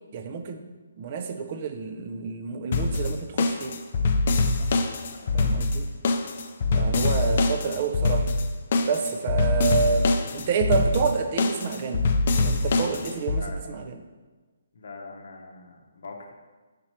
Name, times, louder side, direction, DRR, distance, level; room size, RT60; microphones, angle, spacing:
voice 1, 0.1-0.6 1.0-3.8 5.3-5.9 6.7-8.3 8.9-12.1 12.4-13.4 13.7-14.0, right 5 dB, 30° right, 7 dB, 0.4 m, -28 dB
sound 1, 2.7-13.4, left 3 dB, 40° left, 0.4 m, -24 dB
voice 2, 5.1-5.9 6.9-7.3 13.2-13.8 14.7-16.3, left 3 dB, 60° left, 2 dB, 0.7 m, -44 dB
5.1 x 4.4 x 4.3 m, 1.3 s
hypercardioid pair, 170°, 0 cm